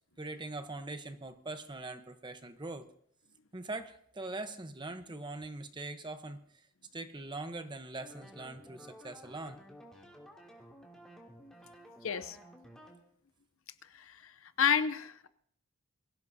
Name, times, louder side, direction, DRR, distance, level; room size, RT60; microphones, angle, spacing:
voice 1, 0.2-2.9 3.5-6.4 6.9-9.6, right 2 dB, 20° right, 8 dB, 0.9 m, -42 dB
sound 1, 8.0-13.0, equal, 5° left, 2.7 m, -54 dB
voice 2, 12.0-12.4 13.9-15.3, left 7 dB, 60° left, 12 dB, 0.7 m, -31 dB
23.0 x 16.0 x 2.8 m, 0.67 s
head